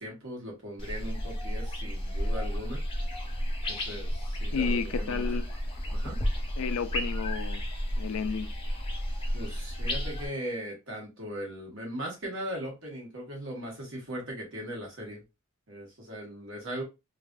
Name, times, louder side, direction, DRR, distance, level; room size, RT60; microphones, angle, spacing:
voice 1, 0.0-2.8 3.7-5.2 5.9-6.2 9.3-15.2 15.7-16.8, equal, 60° right, 1.4 m, -39 dB
sound 1, 0.8-10.3, equal, 25° left, 0.7 m, -32 dB
voice 2, 4.5-5.5 6.6-7.6 8.0-8.5, left 5 dB, 80° left, 0.4 m, -31 dB
3.3 x 2.5 x 2.4 m
head